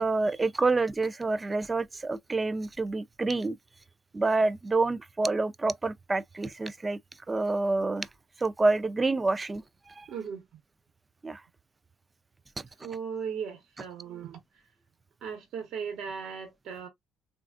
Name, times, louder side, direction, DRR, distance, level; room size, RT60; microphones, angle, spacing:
voice 1, 0.0-3.6 4.1-7.0 7.3-8.1 8.4-10.1 11.2-11.4, right 3 dB, 25° right, 0.3 m, -28 dB
voice 2, 10.1-10.4 12.8-14.6 15.2-16.9, right 6 dB, 70° right, 1.1 m, -37 dB
3.3 x 2.4 x 2.3 m
cardioid pair, 90°, 0 cm